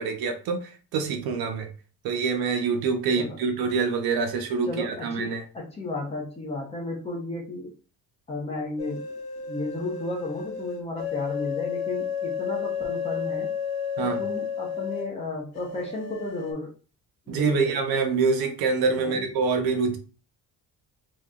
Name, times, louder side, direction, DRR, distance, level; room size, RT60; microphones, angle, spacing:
voice 1, 0.0-1.7 2.0-5.4 14.0-14.2 17.3-20.0, right 5 dB, 90° right, 5 dB, 0.9 m, -26 dB
voice 2, 4.7-7.7 8.3-9.0 9.5-13.5 14.0-16.7 17.3-17.8 19.0-19.3, left 2 dB, 15° left, -2 dB, 0.9 m, -33 dB
sound 1, 8.8-15.1 15.6-16.5, left 7 dB, 85° left, 1.0 m, -32 dB
3.0 x 2.6 x 3.7 m, 0.37 s
cardioid pair, 175°, 35 cm